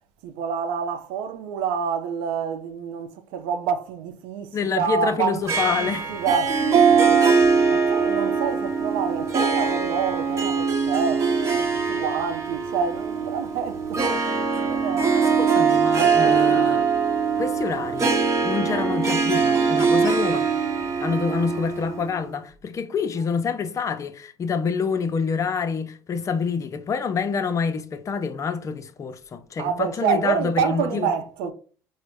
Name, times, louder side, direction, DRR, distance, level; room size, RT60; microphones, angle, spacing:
voice 1, 0.2-5.5 5.8-7.3 7.7-11.2 11.6-15.2 16.2-16.7 29.6-31.5, right 7 dB, 75° right, 0.5 m, -28 dB
voice 2, 4.5-6.2 15.1-16.8 17.4-18.1 18.4-20.5 21.0-31.1 31.4-31.5, left 5 dB, 35° left, 0.5 m, -27 dB
Harp, 5.5-22.2, right 5 dB, 35° right, 0.9 m, -22 dB
3.8 x 2.1 x 3.4 m
supercardioid pair, 85°, 9 cm